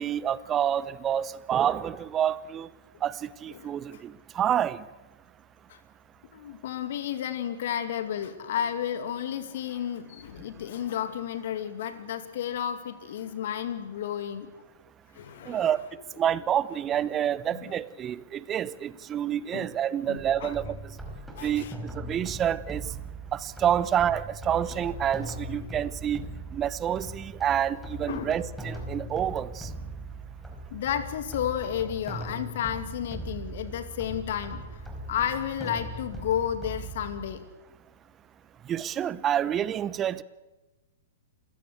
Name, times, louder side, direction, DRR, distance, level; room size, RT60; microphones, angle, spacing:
voice 1, 0.0-2.7 3.0-4.8 15.5-15.8 16.2-20.8 21.4-21.6 21.9-22.8 23.3-26.2 26.5-29.7 38.7-40.2, right 10 dB, 25° right, 19 dB, 0.8 m, -28 dB
voice 2, 6.3-14.5 15.1-15.7 17.7-17.8 19.5-19.7 20.1-20.5 21.4-21.7 28.1-28.3 30.7-37.5, left 9 dB, 60° left, 10 dB, 2.5 m, -32 dB
sound 1, 20.2-37.4, right 1 dB, 5° right, 4.7 m, -40 dB
27.5 x 16.0 x 8.2 m, 1.1 s
figure-of-eight pair, 110°, 0 cm